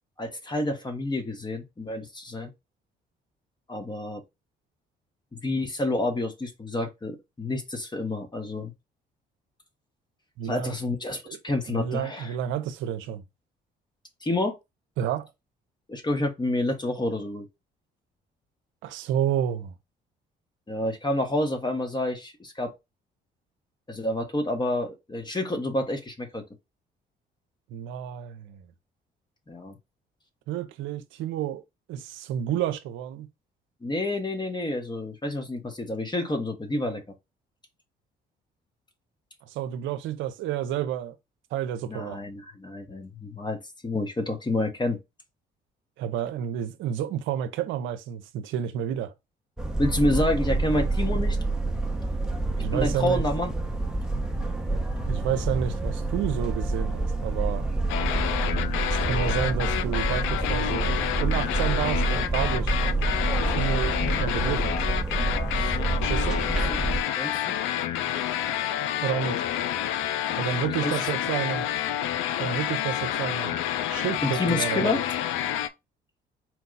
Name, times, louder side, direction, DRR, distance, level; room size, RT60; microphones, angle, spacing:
voice 1, 0.2-2.5 3.7-4.2 5.3-8.7 10.4-12.3 14.2-14.6 15.9-17.5 20.7-22.7 23.9-26.4 29.5-29.8 33.8-37.0 41.9-45.0 49.8-51.4 52.7-53.5 65.5-65.8 66.5-66.8 67.2-67.5 70.8-70.9 74.2-75.0, left 1 dB, 20° left, 1.2 m, -29 dB
voice 2, 10.4-10.8 11.2-11.4 11.7-13.2 15.0-15.3 18.8-19.7 27.7-28.7 30.5-31.6 31.9-33.3 39.5-41.1 41.5-42.2 46.0-49.1 52.6-53.2 55.1-57.7 58.9-62.8 63.5-64.8 66.0-66.4 69.0-69.4 70.4-71.7 72.4-73.6 73.9-74.9, right 10 dB, 80° right, 0.6 m, -30 dB
sound 1, 49.6-67.0, right 2 dB, 5° right, 0.8 m, -27 dB
sound 2, 57.9-75.7, left 11 dB, 85° left, 0.4 m, -29 dB
4.5 x 2.3 x 3.9 m
supercardioid pair, 70°, 20 cm